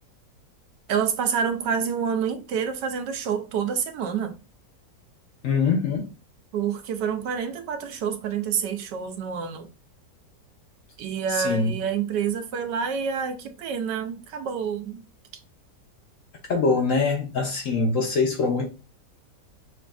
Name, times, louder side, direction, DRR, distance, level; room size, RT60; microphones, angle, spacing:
voice 1, 0.9-4.4 6.5-9.7 11.0-15.0, right 7 dB, 80° right, 1.3 m, -28 dB
voice 2, 5.4-6.1 11.3-11.7 16.5-18.7, left 4 dB, 65° left, 0.9 m, -23 dB
6.1 x 2.4 x 2.3 m
omnidirectional pair, 1.8 m